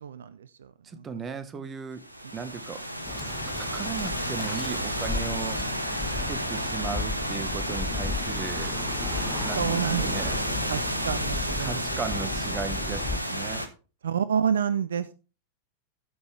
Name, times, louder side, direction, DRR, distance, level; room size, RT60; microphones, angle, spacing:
voice 1, 0.0-1.1 9.6-10.4 10.7-12.0 14.0-15.1, right 7 dB, 65° right, 0.5 m, -29 dB
voice 2, 0.8-2.0 2.3-2.8 3.6-8.8 9.4-10.4 11.6-13.7, right 6 dB, 20° right, 1.2 m, -37 dB
sound 1, 2.0-13.7, right 1 dB, 85° right, 1.1 m, -31 dB
Bird, 3.1-13.2, left 4 dB, 15° left, 0.5 m, -35 dB
14.0 x 5.6 x 3.3 m
figure-of-eight pair, 90°, 0 cm